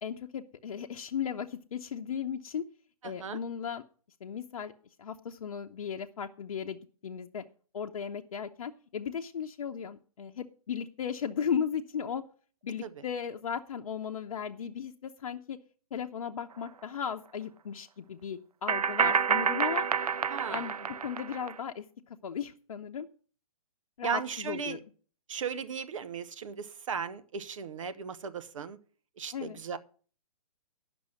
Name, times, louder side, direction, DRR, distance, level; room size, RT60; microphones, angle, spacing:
voice 1, 0.0-2.6 3.0-3.8 4.2-4.7 5.0-7.4 7.7-12.2 12.6-15.6 15.9-19.9 20.5-21.8 22.2-23.1 24.0-24.8 29.3-29.6, left 7 dB, 65° left, 3 dB, 0.8 m, -36 dB
voice 2, 3.0-3.4 12.8-12.9 20.3-20.7 24.0-24.8 25.3-28.8 29.2-29.8, right 6 dB, 60° right, 13 dB, 0.9 m, -36 dB
sound 1, 16.6-16.7 18.7-21.5, right 6 dB, 85° right, 0.5 m, -28 dB
10.5 x 6.1 x 7.5 m, 0.42 s
hypercardioid pair, 130°, 19 cm